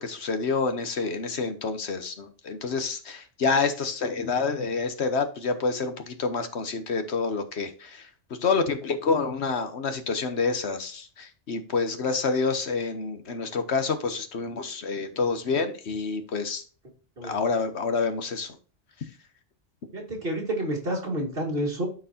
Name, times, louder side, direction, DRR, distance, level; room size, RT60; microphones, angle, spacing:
voice 1, 0.0-8.1 8.4-16.6 17.2-18.6, left 4 dB, 65° left, 8 dB, 1.2 m, -28 dB
voice 2, 19.9-21.9, right 1 dB, 50° right, 0 dB, 2.3 m, -29 dB
12.5 x 4.6 x 2.8 m, 0.38 s
omnidirectional pair, 1.2 m